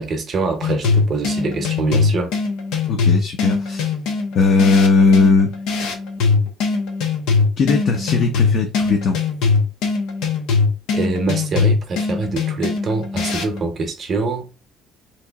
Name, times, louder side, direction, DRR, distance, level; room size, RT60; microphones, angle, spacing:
voice 1, 0.0-2.3 10.9-14.5, right 3 dB, 30° right, 0.7 m, -24 dB
sound 1, 0.6-13.6, left 4 dB, 85° left, 0.7 m, -21 dB
voice 2, 2.9-3.9 4.3-5.5 7.6-9.2, left 4 dB, 40° left, 0.4 m, -17 dB
2.9 x 2.7 x 3.4 m
cardioid pair, 180°, 0 cm